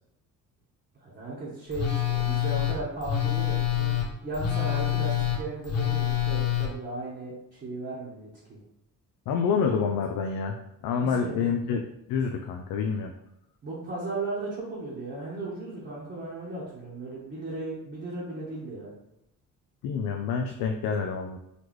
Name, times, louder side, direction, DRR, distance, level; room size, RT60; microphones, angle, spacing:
voice 1, 1.0-8.6 11.0-11.5 13.6-18.9, right 2 dB, 35° right, -7 dB, 1.1 m, -36 dB
Telephone, 1.7-6.7, left 11 dB, 50° left, 1.0 m, -26 dB
voice 2, 9.3-10.6 10.8-11.8 12.1-13.1 19.8-21.4, left 6 dB, 85° left, 3 dB, 0.5 m, -27 dB
4.1 x 3.1 x 3.1 m, 0.83 s
cardioid pair, 130°, 33 cm